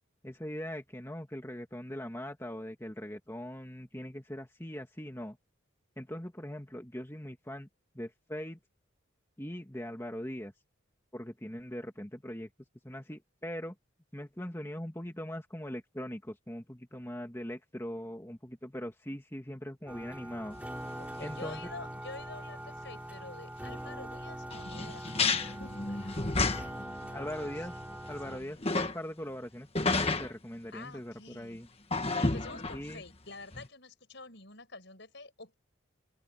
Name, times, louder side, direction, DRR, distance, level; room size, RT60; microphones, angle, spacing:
voice 1, 0.2-5.4 6.0-7.7 7.9-8.6 9.4-10.5 11.1-12.5 12.8-13.8 14.1-20.6 21.2-21.7 27.1-27.7 28.1-31.7 32.7-33.0, equal, 10° left, 2.1 m, -41 dB
sound 1, 19.9-28.4, right 1 dB, 5° right, 3.7 m, -43 dB
sound 2, 20.5-20.7 21.2-21.3 21.5-21.6 24.5-27.0 27.3-27.4 27.9-29.0 29.8-30.3 31.9-33.1 33.5-33.7, left 3 dB, 30° left, 1.5 m, -31 dB
voice 2, 21.0-26.2 26.7-27.3 28.3-28.5 30.7-31.6 31.9-35.5, left 3 dB, 55° left, 7.2 m, -48 dB
open air
head